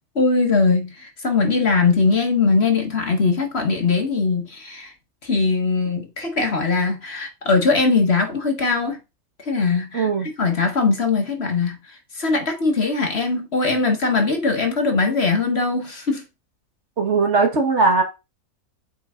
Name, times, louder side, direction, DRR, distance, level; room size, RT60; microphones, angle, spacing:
voice 1, 0.1-4.9 5.2-9.0 9.4-11.8 12.1-16.2, left 4 dB, 45° left, 1.8 m, -21 dB
voice 2, 9.9-10.3 17.0-18.0, right 4 dB, 50° right, 1.8 m, -19 dB
8.0 x 3.9 x 5.0 m
omnidirectional pair, 1.6 m